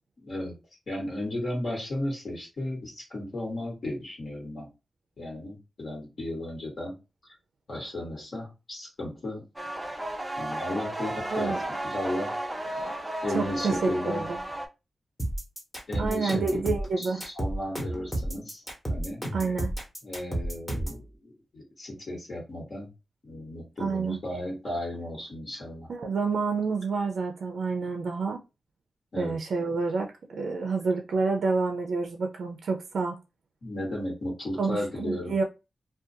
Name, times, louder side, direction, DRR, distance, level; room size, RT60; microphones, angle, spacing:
voice 1, 0.2-0.6 0.9-4.7 5.2-7.0 7.7-9.4 10.4-11.5 11.8-12.3 13.2-14.3 15.9-16.6 17.0-18.6 18.9-19.2 20.0-22.9 23.2-25.9 29.1-29.4 33.6-35.4, left 1 dB, 55° left, 1.2 m, -34 dB
sound 1, 9.6-14.7, right 1 dB, 10° right, 0.4 m, -34 dB
voice 2, 11.3-11.6 12.7-12.9 13.3-14.4 16.0-17.2 19.3-19.7 23.8-24.2 25.9-28.4 29.2-33.2 34.6-35.4, right 4 dB, 80° right, 0.3 m, -28 dB
sound 2, 15.2-21.0, right 1 dB, 10° left, 0.9 m, -31 dB
2.4 x 2.2 x 2.6 m
wide cardioid pair, 105°, 0 cm